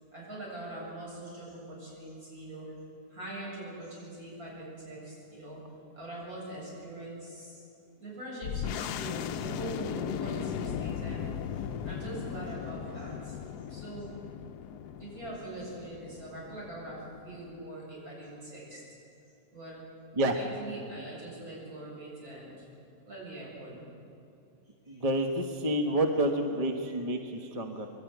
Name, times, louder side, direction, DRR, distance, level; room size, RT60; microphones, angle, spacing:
voice 1, 0.1-2.7 3.1-5.6 5.9-7.6 8.0-11.3 11.8-14.2 15.0-18.8 19.5-19.8 20.3-22.5 23.1-23.8 24.9-25.0 27.6-27.7, right 2 dB, 60° right, -5 dB, 7.9 m, -42 dB
sound 1, 8.4-17.6, left 9 dB, 75° left, 1.2 m, -37 dB
voice 2, 24.9-27.9, right 1 dB, 25° right, 4 dB, 1.1 m, -29 dB
25.0 x 12.0 x 9.3 m, 2.6 s
omnidirectional pair, 1.8 m